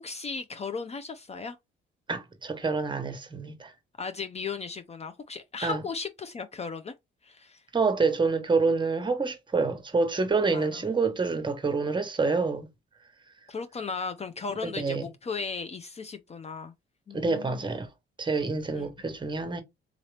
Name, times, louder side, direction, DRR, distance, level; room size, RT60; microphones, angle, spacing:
voice 1, 0.0-1.6 4.0-6.9 7.2-7.6 10.5-10.8 13.5-16.7 17.1-17.8 18.7-19.1, left 5 dB, 35° left, 0.5 m, -36 dB
voice 2, 2.1-3.7 5.6-5.8 7.7-12.7 14.6-15.1 17.1-17.9 18.2-19.6, right 4 dB, 25° right, 1.0 m, -27 dB
3.9 x 2.8 x 3.3 m
cardioid pair, 90°, 20 cm